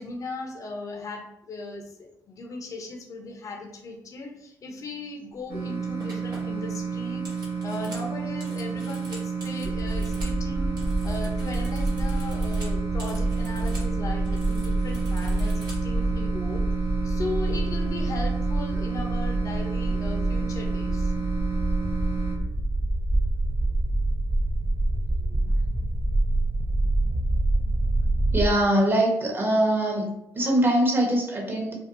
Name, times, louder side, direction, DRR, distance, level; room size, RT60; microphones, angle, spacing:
voice 1, 0.0-10.8 11.0-16.6 17.0-21.1, left 2 dB, 45° left, 2 dB, 0.6 m, -37 dB
sound 1, 5.4-5.6 6.0-10.4 10.7-13.9 14.2-16.1, right 1 dB, 70° right, 0.9 m, -46 dB
sound 2, 5.5-22.4, right 5 dB, 55° right, 1.1 m, -31 dB
sound 3, 9.6-28.5, right 1 dB, 15° right, 0.3 m, -26 dB
voice 2, 28.3-30.1 30.3-31.7, right 1 dB, 30° right, -1 dB, 0.9 m, -23 dB
2.6 x 2.3 x 2.5 m, 0.82 s
supercardioid pair, 60°, 7 cm